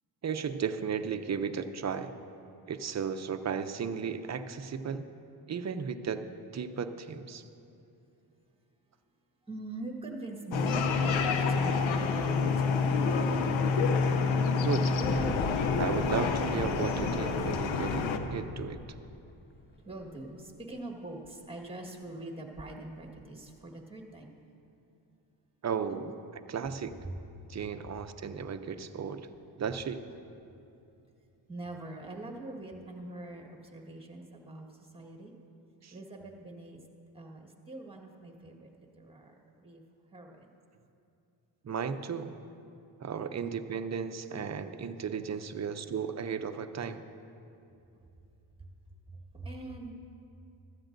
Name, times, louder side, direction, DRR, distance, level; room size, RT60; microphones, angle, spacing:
voice 1, 0.2-2.1 2.7-5.1 5.5-6.3 6.5-7.5 14.6-14.9 15.8-18.8 25.6-26.2 26.5-27.0 27.5-29.3 29.6-30.0 35.8-35.9 41.6-42.3 43.0-47.0, right 6 dB, 35° right, 9 dB, 0.6 m, -35 dB
voice 2, 9.5-13.4 19.8-24.4 25.9-26.1 27.0-27.2 31.5-34.7 34.9-35.3 35.9-36.8 37.1-39.8 40.1-40.5 47.9-48.0 48.6-48.7 49.1-49.9, right 2 dB, 10° right, 2 dB, 1.6 m, -43 dB
sound 1, 10.5-18.2, left 4 dB, 90° left, 0.8 m, -28 dB
Boom, 15.0-19.8 20.0-20.1 21.2-21.3, left 4 dB, 25° left, 0.5 m, -38 dB
15.0 x 12.5 x 2.6 m, 2.7 s
cardioid pair, 80°, 45 cm